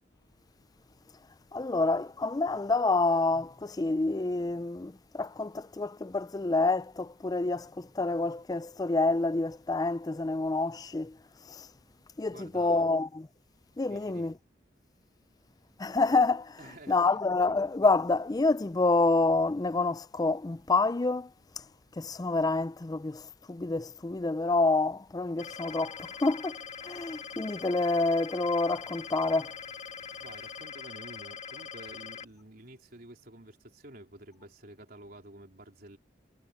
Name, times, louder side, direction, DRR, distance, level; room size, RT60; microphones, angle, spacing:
voice 1, 1.5-11.1 12.2-13.1 13.8-14.3 15.8-16.5 16.9-21.3 22.0-23.2 23.5-26.6 26.9-29.5, left 3 dB, 20° left, 0.4 m, -27 dB
voice 2, 12.3-13.0 13.9-14.3 16.6-17.2 30.2-36.0, right 1 dB, 55° right, 3.7 m, -50 dB
sound 1, 25.4-32.2, left 6 dB, 40° left, 1.4 m, -43 dB
head